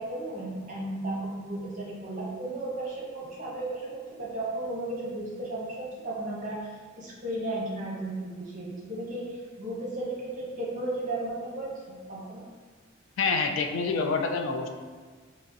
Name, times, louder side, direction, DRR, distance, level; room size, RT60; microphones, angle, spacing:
voice 1, 0.0-12.5, right 2 dB, 40° right, -4 dB, 0.9 m, -34 dB
voice 2, 13.2-14.7, left 4 dB, 75° left, 4 dB, 0.4 m, -27 dB
5.0 x 2.1 x 2.6 m, 1.5 s
head